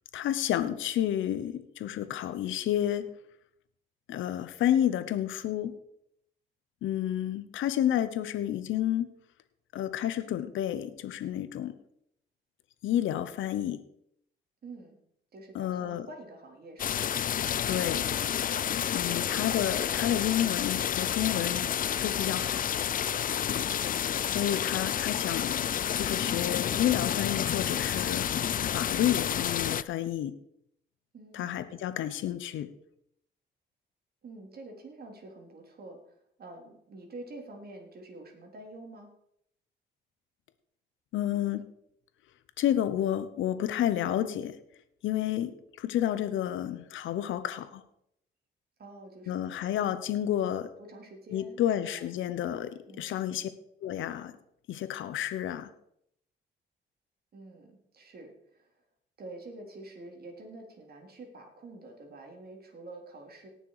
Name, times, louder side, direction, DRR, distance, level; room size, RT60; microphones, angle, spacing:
voice 1, 0.1-3.1 4.1-5.7 6.8-9.1 9.7-11.7 12.8-13.8 15.5-16.1 17.7-18.1 18.9-21.7 22.0-22.6 24.2-25.7 26.0-28.3 28.6-30.4 31.3-32.7 41.1-41.6 42.6-44.6 45.0-47.8 49.3-50.7 51.3-53.5 53.8-54.3 54.7-55.7, left 11 dB, 80° left, 12 dB, 1.0 m, -30 dB
voice 2, 14.6-15.0 15.3-17.1 31.1-31.6 34.2-39.1 48.8-49.9 50.8-51.6 51.9-52.0 52.9-53.2 57.3-58.8 59.2-63.5, right 2 dB, 50° right, 2 dB, 3.6 m, -47 dB
sound 1, 16.8-29.8, left 9 dB, 45° left, 0.5 m, -30 dB
18.0 x 6.7 x 4.9 m, 0.72 s
cardioid pair, 90°, 20 cm